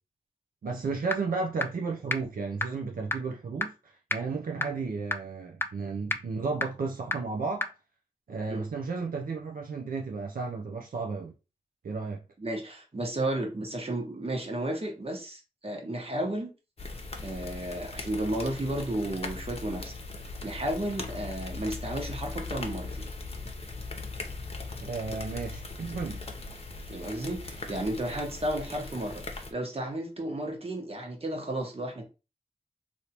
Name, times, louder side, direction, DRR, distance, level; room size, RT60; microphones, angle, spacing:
voice 1, 0.6-7.7 8.3-11.3 11.8-12.2 24.8-26.2, right 4 dB, 75° right, 0.5 m, -33 dB
sound 1, 1.1-1.2 1.6-1.7 2.1-2.2 2.6-2.7 3.1-3.2 3.6-3.7 4.1-4.2 4.6-4.7 5.1-5.2 5.6-5.7 6.1-6.2 6.6-6.7 7.1-7.2 7.6-7.7, left 2 dB, 15° left, 0.4 m, -27 dB
voice 2, 12.4-16.5 17.2-20.0 20.4-23.1 26.9-29.2 29.5-32.1, right 1 dB, 40° right, 1.2 m, -33 dB
sound 2, 16.8-29.5, left 3 dB, 45° left, 0.8 m, -39 dB
3.2 x 2.7 x 2.9 m
cardioid pair, 45°, 15 cm